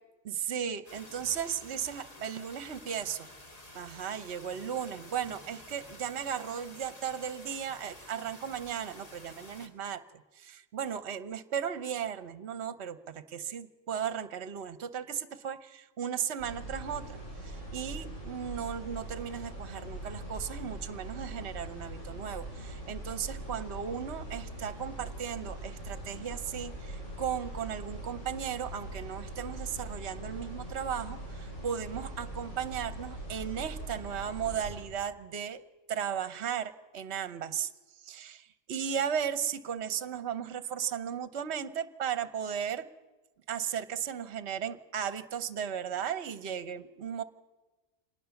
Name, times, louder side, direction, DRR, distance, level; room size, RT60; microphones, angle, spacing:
voice 1, 0.2-3.3 3.7-35.6 35.9-37.7 38.0-42.9 43.5-47.2, right 8 dB, 55° right, 12 dB, 1.2 m, -36 dB
sound 1, 0.9-9.7, left 1 dB, 30° left, 2.2 m, -51 dB
sound 2, 16.4-34.8, right 1 dB, 65° left, 7.9 m, -42 dB
26.5 x 19.5 x 7.1 m, 1.1 s
omnidirectional pair, 1.4 m